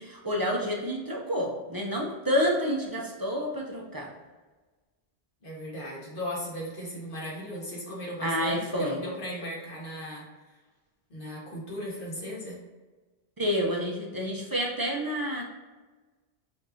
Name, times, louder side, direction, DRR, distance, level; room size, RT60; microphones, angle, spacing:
voice 1, 0.0-4.1 8.2-9.0 13.4-15.4, equal, 30° right, -1 dB, 0.4 m, -29 dB
voice 2, 5.4-10.3 11.1-12.6, equal, 55° left, -4 dB, 1.3 m, -37 dB
5.1 x 2.5 x 2.7 m, 1.3 s
omnidirectional pair, 1.1 m